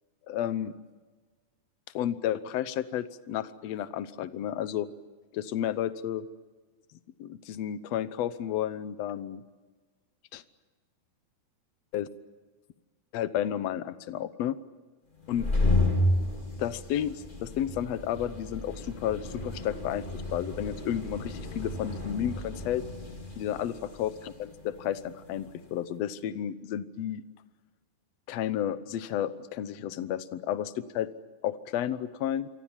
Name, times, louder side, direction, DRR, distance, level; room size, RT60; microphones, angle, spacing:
voice 1, 0.3-0.7 1.9-4.9 5.3-6.3 7.2-9.4 10.3-10.4 11.9-12.1 13.1-14.6 15.3-15.5 16.6-20.0 20.3-22.8 23.4-27.2 28.3-31.1 31.4-32.5, left 10 dB, 75° left, 13 dB, 1.5 m, -32 dB
sound 1, 15.2-25.7, left 1 dB, 15° left, 2.2 m, -32 dB
28.5 x 24.0 x 7.3 m, 1.3 s
omnidirectional pair, 4.2 m